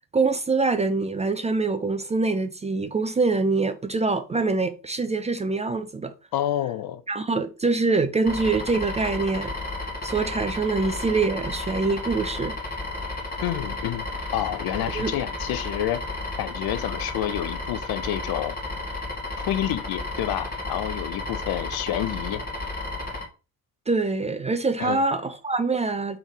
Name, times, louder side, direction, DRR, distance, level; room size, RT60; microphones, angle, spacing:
voice 1, 0.1-6.1 7.1-9.5 10.0-12.5 14.9-15.1 23.9-26.2, right 3 dB, 15° right, 0.4 m, -24 dB
voice 2, 6.3-7.0 13.4-14.0 14.3-16.0 16.4-18.6 19.5-22.4 24.8-25.0, left 12 dB, 50° left, 0.6 m, -28 dB
sound 1, 8.2-23.2, left 2 dB, 20° left, 1.7 m, -32 dB
3.5 x 3.5 x 3.2 m
hypercardioid pair, 50°, 48 cm